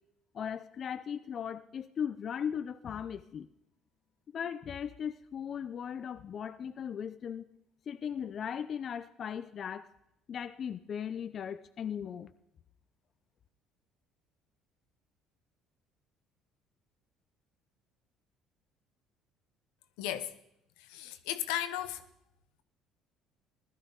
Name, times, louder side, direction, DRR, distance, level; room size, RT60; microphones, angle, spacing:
voice 1, 0.3-3.5 4.3-7.5 7.9-9.9 10.3-12.3, left 8 dB, 50° left, 0.6 m, -38 dB
voice 2, 20.0-20.3 20.8-22.0, left 12 dB, 85° left, 1.0 m, -35 dB
16.5 x 12.5 x 4.0 m
supercardioid pair, 80°, 0 cm